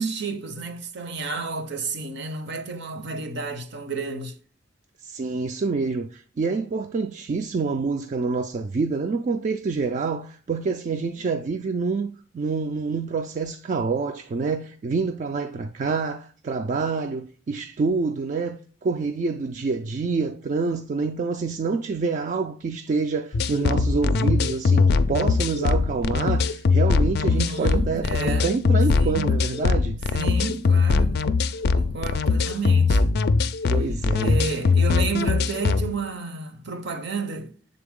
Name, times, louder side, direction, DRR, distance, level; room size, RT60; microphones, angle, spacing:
voice 1, 0.0-4.3 27.2-28.6 28.9-29.3 30.1-31.2 31.7-33.2 34.2-37.5, right 4 dB, 60° right, 0.7 m, -31 dB
voice 2, 5.0-30.0 33.7-34.4, right 4 dB, 40° right, 0.3 m, -27 dB
sound 1, 23.3-35.9, left 4 dB, 55° left, 0.4 m, -21 dB
6.7 x 3.8 x 3.6 m
head